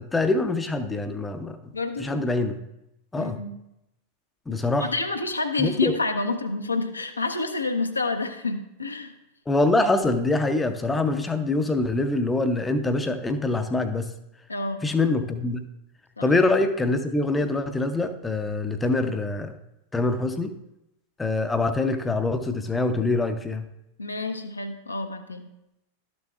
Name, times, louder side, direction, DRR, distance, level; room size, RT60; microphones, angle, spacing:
voice 1, 0.0-1.7 2.0-2.6 3.1-3.4 4.5-4.9 5.6-6.0 9.5-14.1 14.8-15.6 16.2-19.5 19.9-20.5 21.2-23.7, left 2 dB, 10° left, 8 dB, 0.5 m, -24 dB
voice 2, 1.7-2.3 3.2-3.5 4.8-9.1 14.5-14.8 16.2-16.5 24.0-25.5, left 3 dB, 80° left, 6 dB, 0.6 m, -29 dB
12.0 x 6.9 x 2.3 m, 0.87 s
figure-of-eight pair, 90°, 0 cm